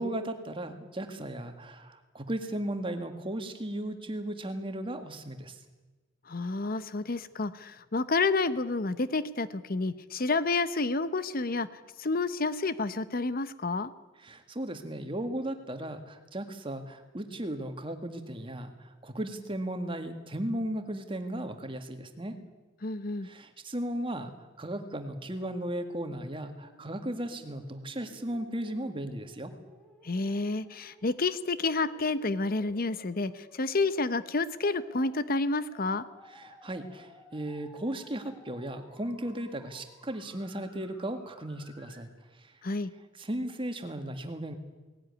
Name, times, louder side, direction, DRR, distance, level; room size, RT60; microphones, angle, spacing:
voice 1, 0.0-5.6 14.2-22.4 23.2-24.3 24.6-29.5 36.3-42.1 42.4-42.5 43.2-44.6, right 1 dB, 25° right, 7 dB, 1.9 m, -36 dB
voice 2, 6.3-11.7 12.0-13.9 22.8-23.3 30.0-36.0 42.6-42.9, left 3 dB, 45° left, 14 dB, 0.8 m, -29 dB
sound 1, 26.5-42.0, left 1 dB, 5° left, 7.3 m, -57 dB
19.0 x 17.0 x 9.6 m, 1.2 s
head